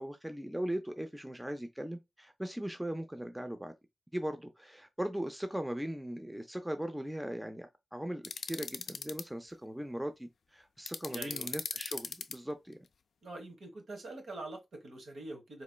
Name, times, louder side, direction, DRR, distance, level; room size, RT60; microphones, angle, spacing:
voice 1, 0.0-3.7 4.1-12.8, right 1 dB, 5° right, 0.4 m, -39 dB
sound 1, 8.2-9.2 10.9-12.3, left 6 dB, 75° left, 0.3 m, -38 dB
voice 2, 11.1-11.6 13.2-15.6, right 2 dB, 70° right, 1.2 m, -44 dB
4.2 x 2.9 x 2.2 m
wide cardioid pair, 175°, 0 cm